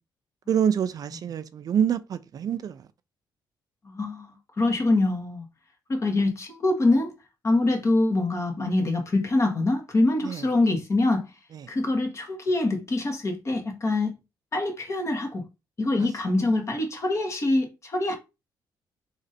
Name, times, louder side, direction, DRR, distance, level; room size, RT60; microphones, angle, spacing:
voice 1, 0.5-2.8 10.2-10.4, right 8 dB, 50° right, 0.4 m, -26 dB
voice 2, 3.8-5.4 5.9-7.1 7.4-11.3 11.7-14.1 14.5-15.5 15.8-18.2, left 2 dB, 40° left, 1.5 m, -24 dB
3.9 x 3.0 x 4.1 m
cardioid pair, 110°, 8 cm